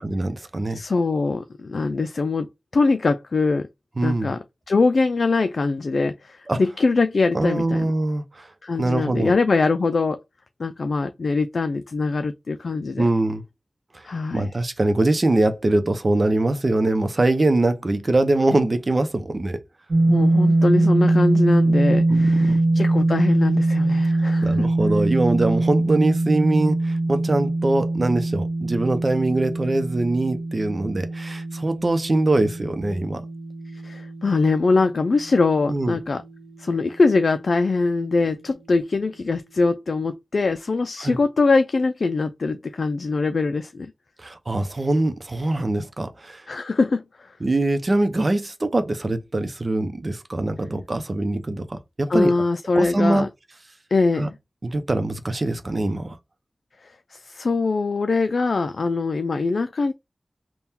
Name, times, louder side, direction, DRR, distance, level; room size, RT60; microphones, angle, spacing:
voice 1, 0.0-0.8 4.0-4.4 6.5-6.6 7.3-8.5 8.8-9.3 13.0-13.4 13.9-14.1 14.3-19.6 22.1-22.6 24.1-33.2 35.7-36.0 41.0-41.2 44.2-46.4 47.4-52.3 52.8-53.3 54.2-54.3 54.6-56.1, right 2 dB, 50° right, 0.7 m, -23 dB
voice 2, 0.7-2.5 2.7-3.7 4.0-7.9 8.6-10.2 10.6-13.1 14.0-14.5 20.1-24.7 33.7-36.2 36.6-43.9 46.5-47.4 52.1-53.3 53.9-54.3 56.8-59.9, left 3 dB, 80° left, 0.3 m, -22 dB
sound 1, 19.9-35.9, right 2 dB, 75° right, 1.0 m, -22 dB
3.5 x 2.3 x 4.2 m
wide cardioid pair, 50°, 0 cm